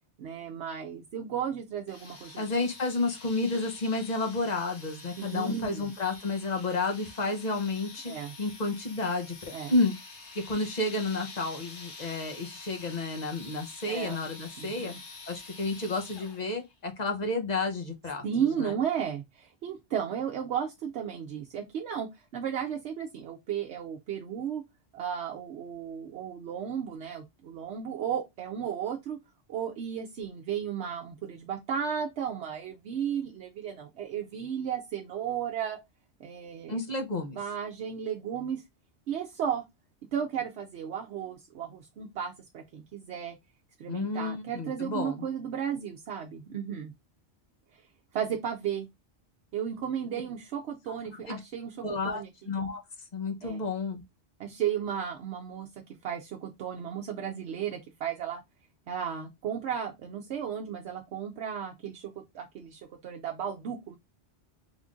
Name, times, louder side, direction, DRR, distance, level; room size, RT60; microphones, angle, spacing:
voice 1, 0.2-2.4 5.2-5.8 8.1-8.3 9.5-9.7 13.8-14.2 14.6-15.0 18.2-22.1 22.3-24.6 24.9-29.2 29.5-35.8 36.2-36.8 37.3-38.6 39.1-39.6 40.1-43.3 43.8-46.9 48.1-48.9 49.5-51.8 52.1-52.3 53.4-53.6 54.4-55.7 56.0-58.4 58.9-64.0, right 8 dB, 75° right, 0.9 m, -34 dB
sound 1, 1.9-16.6, left 3 dB, 75° left, 1.4 m, -47 dB
voice 2, 2.4-8.1 8.4-9.9 10.3-14.9 15.3-18.3 18.6-18.7 36.7-37.4 43.9-45.3 51.3-51.4 51.8-54.0, left 3 dB, 40° left, 0.9 m, -31 dB
3.7 x 2.6 x 3.5 m
omnidirectional pair, 1.2 m